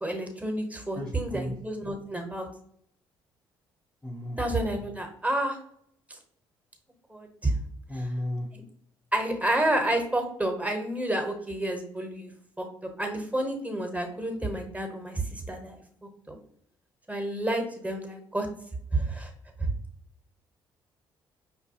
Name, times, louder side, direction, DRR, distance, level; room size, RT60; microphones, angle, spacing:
voice 1, 0.0-2.5 4.4-5.6 7.1-7.5 7.9-8.0 9.1-12.3 12.6-12.7 13.0-15.2 15.5-15.8 16.3-16.4 17.1-18.5 18.9-19.3 19.6-19.7, right 1 dB, 10° right, 3 dB, 0.9 m, -29 dB
voice 2, 0.9-1.5 4.0-4.4 7.9-8.5, left 1 dB, 5° left, -1 dB, 0.5 m, -34 dB
5.1 x 2.2 x 2.8 m, 0.68 s
hypercardioid pair, 45°, 12 cm